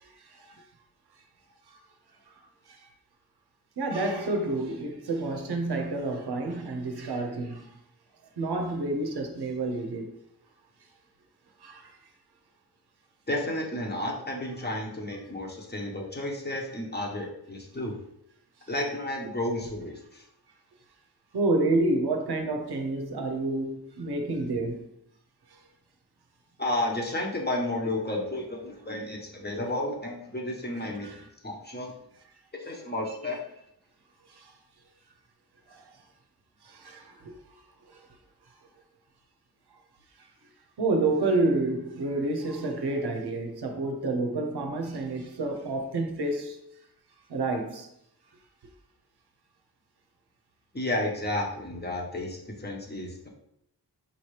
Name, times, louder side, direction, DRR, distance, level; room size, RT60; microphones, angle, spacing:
voice 1, 0.0-0.6 1.7-1.8 2.7-2.9 3.8-7.7 8.4-10.2 11.6-12.0 17.0-17.1 21.3-24.9 31.0-31.2 33.1-33.3 34.3-34.5 35.7-35.8 36.6-37.4 37.9-38.1 40.2-40.3 40.8-46.6 47.3-47.9, right 2 dB, 85° right, 0.7 m, -29 dB
voice 2, 13.3-17.9 18.7-20.2 26.6-32.0 32.5-33.4 50.7-53.3, left 1 dB, 25° left, 1.1 m, -32 dB
5.3 x 2.8 x 3.2 m
wide cardioid pair, 55°, 38 cm